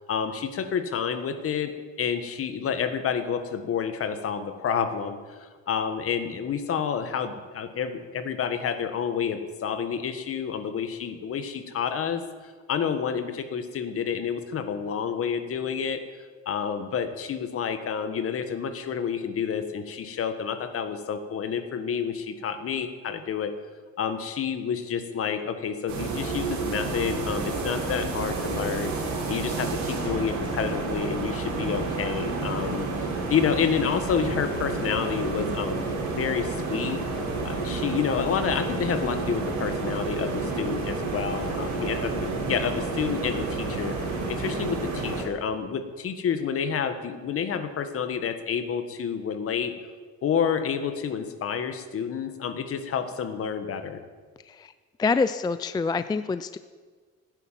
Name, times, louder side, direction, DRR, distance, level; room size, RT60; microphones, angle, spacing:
voice 1, 0.0-1.7 2.0-16.0 16.4-23.5 24.0-32.9 33.3-35.9 36.2-37.0 37.4-49.7 50.2-54.0, left 7 dB, 50° left, 9 dB, 1.5 m, -29 dB
sound 1, 25.9-45.2, right 3 dB, 70° right, 4.0 m, -30 dB
voice 2, 55.0-56.6, left 4 dB, 15° left, 12 dB, 0.3 m, -26 dB
16.0 x 10.0 x 7.5 m, 1.5 s
cardioid pair, 140°, 29 cm